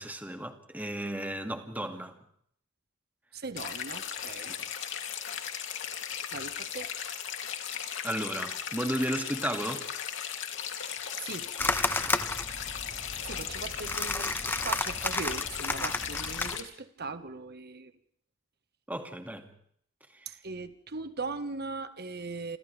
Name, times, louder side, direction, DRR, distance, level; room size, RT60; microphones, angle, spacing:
voice 1, 0.0-2.2 8.0-9.9 18.9-19.5 20.1-20.4, right 1 dB, 10° right, 2.3 m, -34 dB
voice 2, 3.3-4.5 6.3-6.9 11.2-11.5 13.3-17.9 20.2-22.6, right 3 dB, 50° right, 1.6 m, -39 dB
sound 1, 3.6-16.6, left 8 dB, 65° left, 3.0 m, -37 dB
sound 2, 11.6-16.6, left 2 dB, 10° left, 1.4 m, -32 dB
28.5 x 27.5 x 3.5 m
head